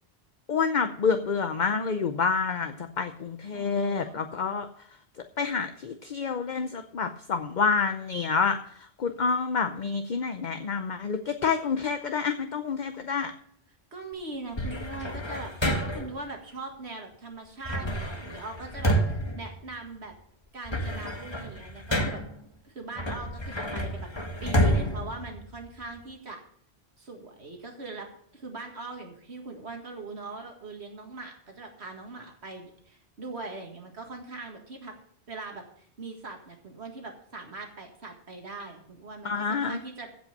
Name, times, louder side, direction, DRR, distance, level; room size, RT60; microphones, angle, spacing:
voice 1, 0.5-4.7 5.4-8.6 9.0-13.3 39.2-39.8, left 5 dB, 50° left, 7 dB, 0.8 m, -28 dB
voice 2, 3.5-4.2 13.9-15.5 15.8-20.1 20.5-22.2 22.6-26.4 27.0-28.1 28.3-35.0 35.3-40.1, right 3 dB, 85° right, 2 dB, 2.2 m, -41 dB
sound 1, 14.6-16.2 17.6-20.1 20.5-22.4 23.0-26.0, equal, 25° left, 1.4 m, -29 dB
15.5 x 5.5 x 6.7 m, 0.65 s
omnidirectional pair, 1.1 m